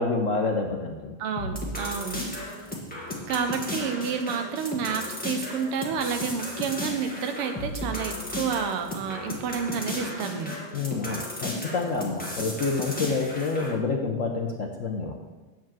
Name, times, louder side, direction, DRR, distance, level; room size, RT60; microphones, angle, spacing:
voice 1, 0.0-1.2 10.7-15.1, left 3 dB, 65° left, 2 dB, 0.7 m, -28 dB
voice 2, 1.2-2.2 3.3-10.5, right 6 dB, 90° right, 6 dB, 1.8 m, -30 dB
sound 1, 1.4-13.7, left 1 dB, 5° left, 1.4 m, -35 dB
9.1 x 4.8 x 7.5 m, 1.2 s
omnidirectional pair, 2.4 m